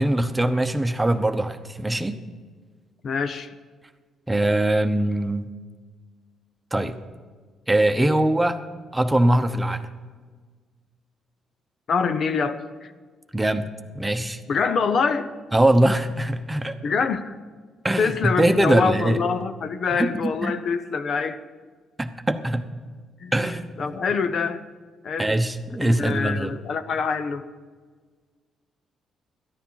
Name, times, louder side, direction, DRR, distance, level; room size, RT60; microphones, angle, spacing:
voice 1, 0.0-2.2 4.3-5.5 6.7-7.0 7.7-8.6 8.9-9.9 13.3-13.7 13.9-14.4 15.5-16.8 17.8-19.2 19.9-20.5 22.0-22.6 23.3-23.9 25.2-26.6, right 1 dB, 15° right, 8 dB, 0.9 m, -22 dB
voice 2, 3.0-3.5 11.9-12.9 14.5-15.3 16.8-17.3 18.0-21.4 23.2-23.3 23.8-24.6 25.0-25.4 25.8-27.4, left 5 dB, 55° left, 9 dB, 0.8 m, -25 dB
13.5 x 10.0 x 5.8 m, 1.5 s
cardioid pair, 90°, 0 cm